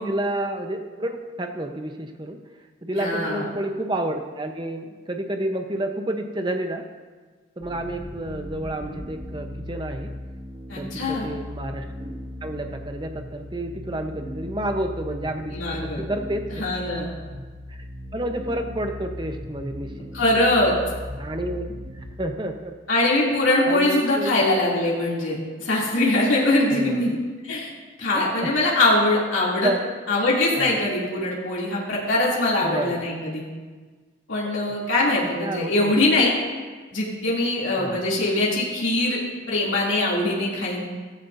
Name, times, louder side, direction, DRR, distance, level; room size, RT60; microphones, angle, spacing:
voice 1, 0.0-2.4 2.8-6.9 7.6-10.1 10.8-16.6 17.7-17.9 18.1-19.9 21.2-22.7 23.7-24.4 26.7-27.2 28.1-28.2 29.4-29.9 30.5-30.8 32.6-33.1 35.4-35.9 37.8-38.0, right 1 dB, 25° right, 5 dB, 0.8 m, -30 dB
voice 2, 2.9-3.5 10.7-11.3 15.5-16.0 16.6-17.1 20.1-20.8 22.9-27.2 27.5-27.7 28.0-29.7 30.1-33.4 34.3-36.3 36.9-39.2 39.5-40.8, left 2 dB, 90° left, -5 dB, 2.8 m, -22 dB
sound 1, 7.6-22.1, left 1 dB, 55° right, 4.4 m, -37 dB
15.0 x 14.0 x 2.7 m, 1.4 s
head